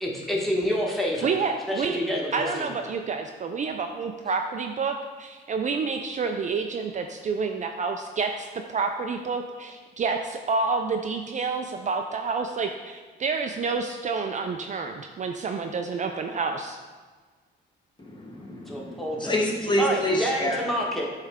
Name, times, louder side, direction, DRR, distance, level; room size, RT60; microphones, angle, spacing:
voice 1, 0.0-1.3 1.7-2.7 18.7-19.3 19.8-21.0, equal, ahead, -3 dB, 1.3 m, -28 dB
voice 2, 1.2-2.0 2.3-16.8, right 4 dB, 40° right, 5 dB, 0.4 m, -29 dB
voice 3, 18.0-20.6, equal, 25° left, -1 dB, 1.1 m, -27 dB
8.1 x 3.3 x 3.6 m, 1.4 s
cardioid pair, 90°, 20 cm